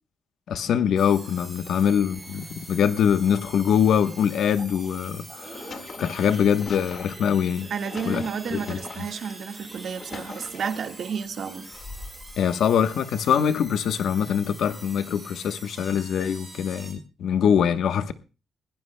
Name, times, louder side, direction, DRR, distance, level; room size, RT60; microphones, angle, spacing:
voice 1, 0.5-7.7 8.1-8.2 8.5-8.8 12.4-18.1, left 8 dB, 75° left, 1.0 m, -23 dB
sound 1, 1.0-16.9, right 1 dB, 5° right, 5.0 m, -45 dB
Idling / Accelerating revving vroom / Sawing, 1.9-13.0 13.4-13.6 13.8-13.9 14.4-14.7 15.1-15.2 15.4-15.8, right 3 dB, 30° right, 7.8 m, -49 dB
sound 2, 5.4-9.3 9.8-11.0 11.7-12.4, left 4 dB, 45° left, 1.8 m, -42 dB
voice 2, 7.7-11.7, right 6 dB, 60° right, 1.6 m, -31 dB
21.5 x 16.5 x 2.2 m
cardioid pair, 125°, 0 cm